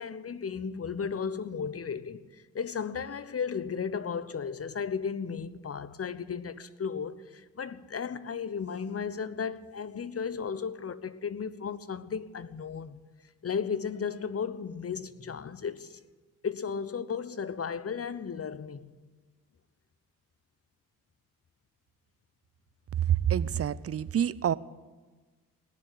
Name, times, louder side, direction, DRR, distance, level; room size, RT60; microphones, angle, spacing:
voice 1, 0.0-13.0 13.4-16.0 16.4-18.9, left 6 dB, 35° left, 0.9 m, -35 dB
voice 2, 23.0-24.5, right 10 dB, 35° right, 0.6 m, -27 dB
19.0 x 7.4 x 10.0 m
hypercardioid pair, 40°, 40 cm